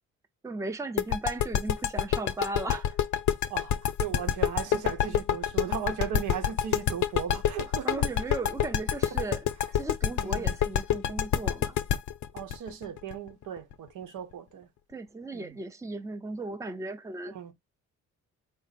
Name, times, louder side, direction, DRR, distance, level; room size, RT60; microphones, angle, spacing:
voice 1, 0.4-3.0 7.8-9.5 9.7-11.8 14.9-17.4, right 2 dB, 10° right, 0.6 m, -36 dB
sound 1, 1.0-13.7, left 10 dB, 70° left, 0.7 m, -26 dB
voice 2, 3.5-8.1 10.2-10.6 12.3-14.7 15.3-15.5 17.2-17.5, right 9 dB, 80° right, 1.0 m, -37 dB
4.2 x 2.1 x 4.1 m
cardioid pair, 90°, 30 cm